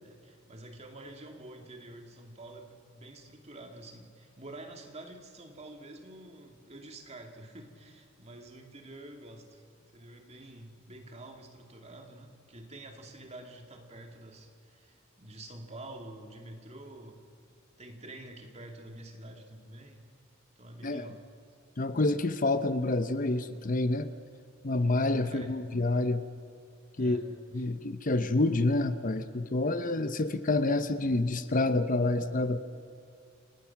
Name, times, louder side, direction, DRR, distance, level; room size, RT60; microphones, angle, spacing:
voice 1, 0.0-17.2 17.8-20.0 20.6-21.2 24.9-25.5 26.9-27.2 27.6-27.7, right 1 dB, 35° right, 3 dB, 2.5 m, -48 dB
voice 2, 20.8-21.1 21.8-24.1 24.6-26.2 27.0-27.2 27.5-32.6, left 2 dB, 40° left, 11 dB, 0.8 m, -28 dB
29.5 x 18.5 x 5.9 m, 2.5 s
head